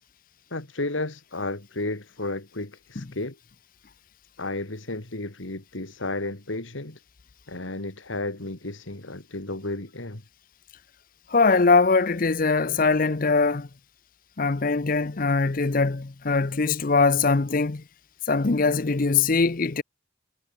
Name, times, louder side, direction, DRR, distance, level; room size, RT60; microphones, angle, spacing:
voice 1, 0.5-3.4 4.4-7.0 7.5-10.2, left 2 dB, 85° left, 2.7 m, -33 dB
voice 2, 11.3-13.7 14.4-17.8 18.3-19.8, left 4 dB, 45° left, 0.7 m, -22 dB
head